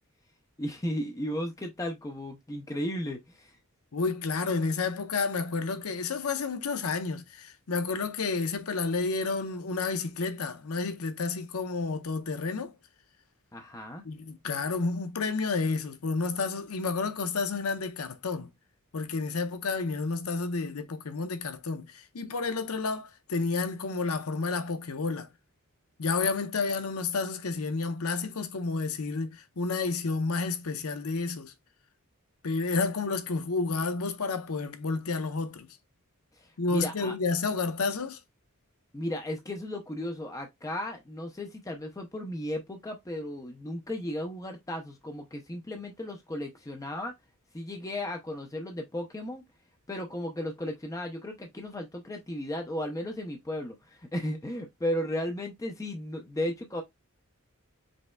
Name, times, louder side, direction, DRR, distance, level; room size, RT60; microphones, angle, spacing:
voice 1, 0.6-3.6 13.5-14.0 36.3-37.2 38.9-47.1 47.5-49.4 49.9-56.8, left 1 dB, 15° left, 0.5 m, -35 dB
voice 2, 3.9-12.7 14.0-18.5 18.9-25.3 26.0-31.5 32.4-35.7 36.6-38.2, left 4 dB, 75° left, 0.7 m, -30 dB
5.2 x 3.4 x 2.2 m
head